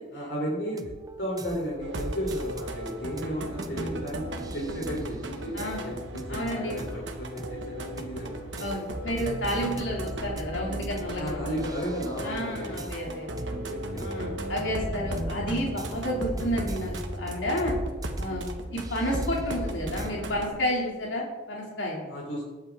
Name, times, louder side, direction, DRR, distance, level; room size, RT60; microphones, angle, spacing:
voice 1, 0.1-0.9 1.2-4.2 4.5-8.5 11.1-12.8 13.4-14.3 22.1-22.4, equal, 75° left, -4 dB, 3.2 m, -34 dB
sound 1, 0.7-20.1, right 1 dB, 20° right, 0.7 m, -41 dB
sound 2, 1.8-20.5, right 1 dB, 90° right, 1.4 m, -36 dB
voice 2, 5.5-5.9 6.3-6.8 8.6-11.5 12.2-13.5 14.0-17.7 18.2-18.5 18.7-22.1, equal, 90° left, -2 dB, 2.6 m, -31 dB
19.5 x 8.3 x 3.6 m, 1.2 s
head